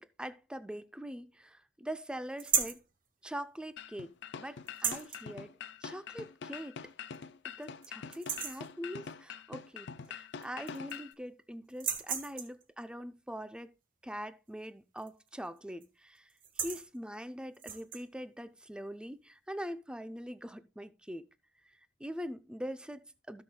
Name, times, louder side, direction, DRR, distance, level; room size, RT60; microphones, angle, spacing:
voice 1, 0.0-2.8 3.2-4.1 4.4-6.9 7.6-13.7 14.0-21.2 22.0-23.4, equal, 5° right, 0.5 m, -43 dB
sound 1, 2.4-2.8 4.7-5.2 6.6-6.7 7.1-7.2 7.6-7.9 8.1-8.7 10.0-10.1 10.4-11.1 11.7-12.6 15.0-15.3 15.6-15.8 16.3-16.9 17.5-18.0, right 7 dB, 45° right, 1.1 m, -34 dB
sound 2, 3.8-11.1, left 6 dB, 65° left, 0.5 m, -45 dB
16.0 x 6.2 x 2.2 m
head